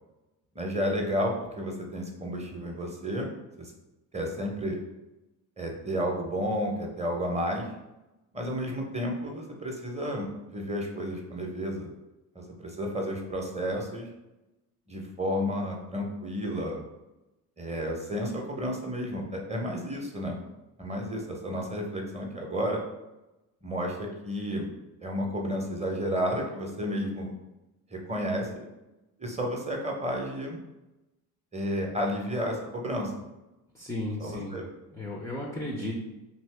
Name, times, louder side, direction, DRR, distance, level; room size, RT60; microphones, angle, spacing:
voice 1, 0.5-3.3 3.6-3.7 4.1-4.8 5.6-7.7 8.3-11.9 12.3-14.1 14.9-16.8 17.6-20.4 20.8-22.8 23.6-24.7 25.0-27.3 27.9-28.7 29.2-30.6 31.5-33.1 34.2-34.7, equal, 15° right, 1 dB, 0.8 m, -31 dB
voice 2, 33.7-34.6 34.9-36.0, left 1 dB, 5° left, -2 dB, 0.4 m, -34 dB
2.8 x 2.7 x 3.3 m, 0.99 s
hypercardioid pair, 60°, 49 cm